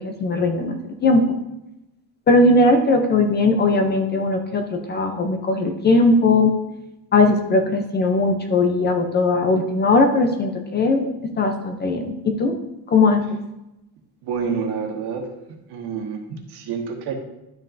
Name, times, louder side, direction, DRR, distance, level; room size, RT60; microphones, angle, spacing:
voice 1, 0.0-1.4 2.3-6.5 7.1-12.5 12.9-13.2, left 2 dB, 25° left, 5 dB, 0.5 m, -19 dB
voice 2, 14.2-15.3 15.7-17.1, right 6 dB, 70° right, 3 dB, 1.4 m, -28 dB
12.0 x 5.3 x 2.6 m, 0.93 s
cardioid pair, 175°, 42 cm